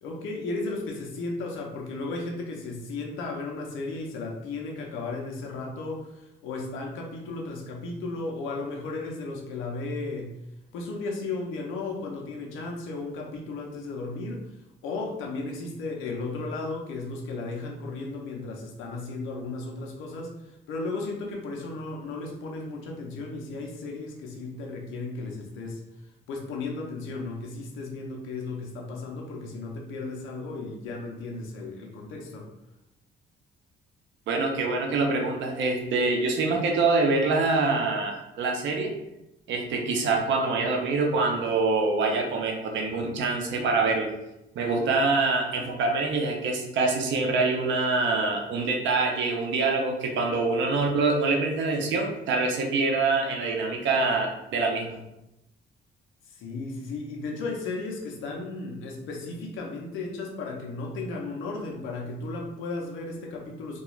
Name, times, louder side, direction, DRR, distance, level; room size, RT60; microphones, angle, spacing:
voice 1, 0.0-10.4 10.7-14.5 14.8-25.8 26.3-32.5 56.3-63.8, left 3 dB, 90° left, 0 dB, 0.5 m, -35 dB
voice 2, 34.3-38.9 39.5-44.1 44.6-55.0, right 3 dB, 70° right, 1 dB, 0.6 m, -25 dB
2.4 x 2.2 x 3.0 m, 0.89 s
cardioid pair, 90°, 20 cm